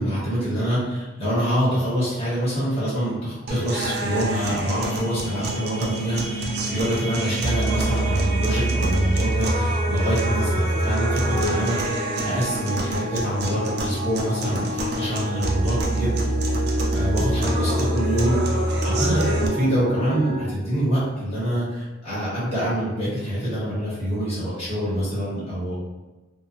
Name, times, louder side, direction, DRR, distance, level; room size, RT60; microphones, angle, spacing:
voice 1, 0.0-16.1 16.9-25.8, equal, 35° left, -9 dB, 1.3 m, -25 dB
sound 1, 3.0-20.5, equal, 10° right, 0.9 m, -32 dB
sound 2, 3.5-19.5, right 1 dB, 55° right, 0.4 m, -26 dB
2.6 x 2.4 x 2.4 m, 1.2 s
head